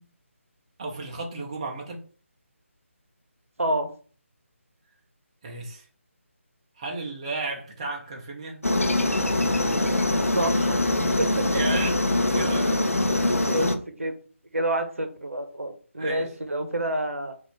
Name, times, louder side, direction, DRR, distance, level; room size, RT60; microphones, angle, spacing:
voice 1, 0.8-2.0 5.4-5.9 6.8-8.6 11.5-12.0 12.3-12.8 16.0-16.3, right 3 dB, 25° right, 0 dB, 0.5 m, -33 dB
voice 2, 3.6-3.9 10.3-10.8 11.2-11.5 12.9-13.7 14.0-14.2 14.5-17.3, right 1 dB, 70° right, 7 dB, 0.7 m, -28 dB
Aircraft, 8.6-13.7, left 2 dB, 80° left, 0.6 m, -23 dB
3.8 x 2.4 x 3.2 m, 0.40 s
figure-of-eight pair, 155°, 7 cm